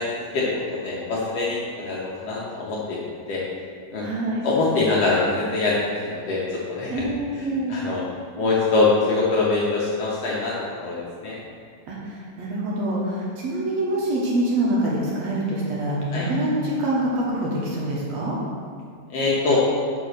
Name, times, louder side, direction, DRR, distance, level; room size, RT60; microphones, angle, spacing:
voice 1, 0.0-3.0 3.3-3.4 3.9-4.1 4.4-7.0 7.3-8.0 8.4-10.5 10.8-11.4 16.1-16.2 19.1-19.6, left 3 dB, 65° left, -5 dB, 1.7 m, -24 dB
voice 2, 4.0-4.5 6.9-7.7 11.9-18.4, right 1 dB, 60° right, -5 dB, 2.1 m, -25 dB
6.0 x 5.0 x 6.4 m, 2.1 s
omnidirectional pair, 3.7 m